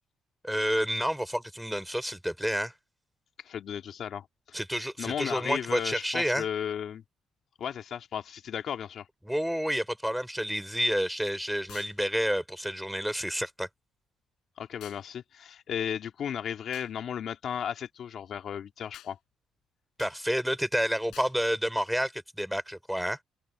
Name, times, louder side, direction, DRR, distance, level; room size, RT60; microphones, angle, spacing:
voice 1, 0.4-2.7 4.5-6.4 9.3-13.7 20.0-23.2, equal, ahead, 3.7 m, -29 dB
voice 2, 3.4-7.0 7.6-9.1 14.6-19.2, left 8 dB, 65° left, 2.4 m, -35 dB
sound 1, 11.7-12.0 14.8-15.0 16.7-16.9 18.9-19.1 20.0-20.2 21.1-21.4, left 13 dB, 80° left, 5.1 m, -49 dB
open air
cardioid pair, 90°, 0 cm